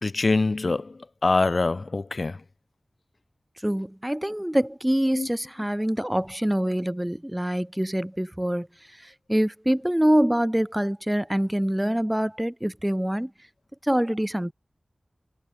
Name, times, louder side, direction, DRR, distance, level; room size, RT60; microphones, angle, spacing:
voice 1, 0.0-2.4 5.2-5.3, left 3 dB, 60° left, 2.6 m, -24 dB
voice 2, 3.6-8.7 8.9-13.3 13.8-14.5, equal, 10° right, 5.6 m, -25 dB
cardioid pair, 45°, 0 cm